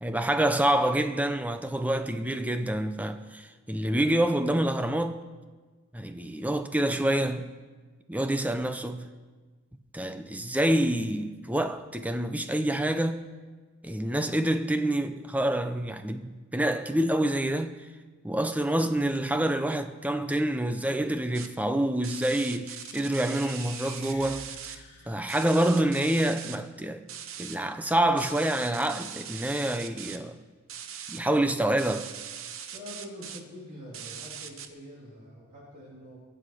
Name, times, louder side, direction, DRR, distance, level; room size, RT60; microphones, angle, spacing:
voice 1, 0.0-5.2 5.9-7.5 8.1-9.1 9.9-13.2 13.8-17.7 18.2-24.8 25.1-27.0 27.4-30.4 31.1-32.1, right 1 dB, 5° right, 0.6 m, -27 dB
sound 1, 21.3-21.5 22.0-24.8 25.3-26.6 27.1-27.6 28.2-30.2 30.7-31.2 31.8-33.4 33.9-34.7, right 8 dB, 60° right, 0.9 m, -40 dB
sound 2, 22.8-25.7, left 2 dB, 55° left, 4.4 m, -49 dB
voice 2, 32.7-36.2, left 1 dB, 35° right, 3.3 m, -45 dB
22.0 x 7.8 x 4.9 m
head